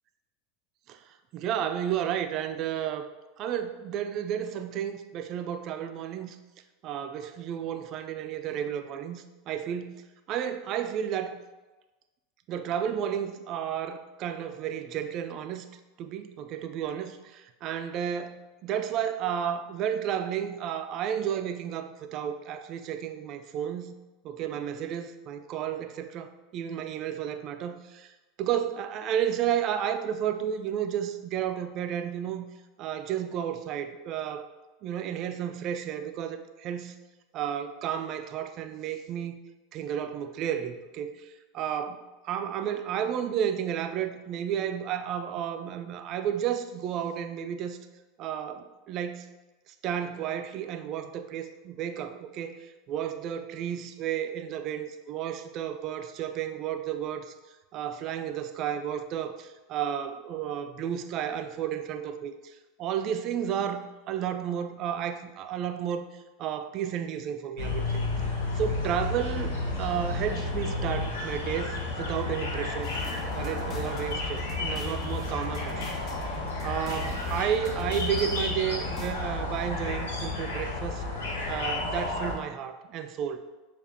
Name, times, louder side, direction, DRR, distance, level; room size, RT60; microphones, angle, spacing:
voice 1, 0.9-3.0 3.4-6.4 6.8-9.9 10.3-11.4 12.5-15.7 16.0-23.9 24.2-28.1 28.4-32.5 32.8-34.5 34.8-36.9 37.3-39.4 39.7-47.8 48.2-49.3 49.8-57.3 57.7-66.1 66.4-68.0 68.5-69.5 69.8-72.9 73.3-75.8 76.2-81.0 81.5-83.4, right 9 dB, 50° right, 8 dB, 0.4 m, -32 dB
sound 1, 67.6-82.3, left 2 dB, 85° left, 0.8 m, -32 dB
sound 2, 72.8-79.1, left 3 dB, 35° left, 0.8 m, -44 dB
6.9 x 2.4 x 2.7 m, 1.1 s
hypercardioid pair, 95°, 0 cm